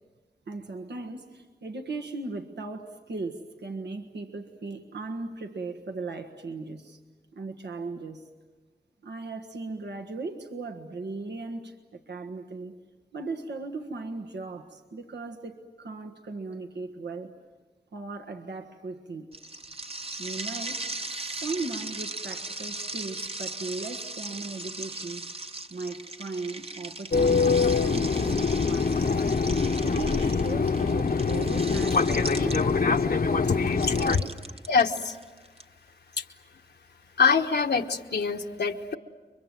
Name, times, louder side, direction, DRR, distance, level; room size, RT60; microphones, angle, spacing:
voice 1, 0.5-7.0 7.3-8.3 9.0-12.8 13.1-17.3 17.9-19.3 20.2-20.8 21.1-25.3 25.7-29.2 29.8-32.8 34.1-34.4, right 3 dB, 85° right, 4 dB, 1.5 m, -37 dB
sound 1, 19.3-33.0 33.7-35.6, right 2 dB, 35° right, 1.0 m, -38 dB
Fixed-wing aircraft airplane, 27.1-34.2, left 4 dB, 60° left, 1.0 m, -24 dB
voice 2, 34.7-35.2 36.2-36.3 37.2-39.0, left 5 dB, 75° left, 4 dB, 1.3 m, -24 dB
30.0 x 24.0 x 7.7 m, 1.3 s
wide cardioid pair, 65°, 17 cm